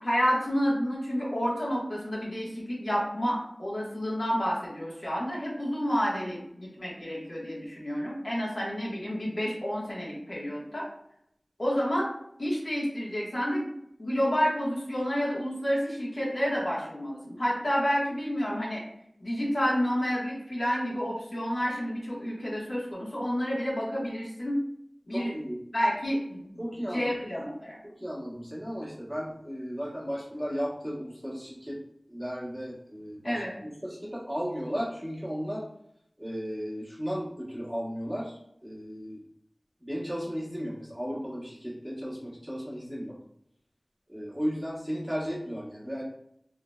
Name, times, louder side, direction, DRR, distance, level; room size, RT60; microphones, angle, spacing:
voice 1, 0.0-10.9 11.6-12.1 12.4-13.6 14.0-18.8 19.2-24.6 25.1-25.3 25.7-26.5 26.9-27.8 33.2-33.5, equal, 55° left, -5 dB, 1.4 m, -29 dB
voice 2, 25.1-25.6 26.6-27.1 27.8-31.8 32.1-35.6 36.2-39.2 39.8-43.2 44.1-46.0, equal, ahead, -8 dB, 1.3 m, -35 dB
3.7 x 3.0 x 2.3 m, 0.73 s
wide cardioid pair, 50°, 0 cm